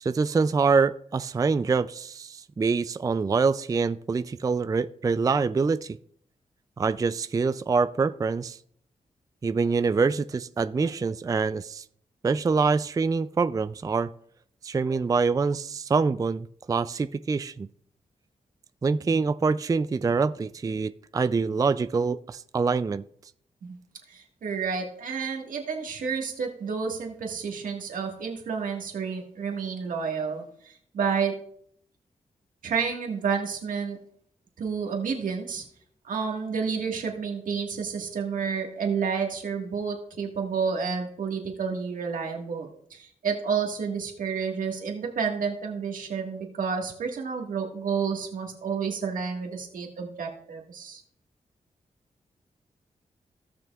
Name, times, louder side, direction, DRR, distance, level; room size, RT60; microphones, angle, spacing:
voice 1, 0.0-6.0 6.8-8.6 9.4-11.8 12.2-14.1 14.6-17.7 18.8-23.0, right 4 dB, 25° right, 14 dB, 0.3 m, -25 dB
voice 2, 24.1-31.3 32.6-34.0 34.6-35.6 36.0-51.0, right 6 dB, 85° right, 2 dB, 1.7 m, -30 dB
16.5 x 6.1 x 2.4 m, 0.65 s
cardioid pair, 65°, 14 cm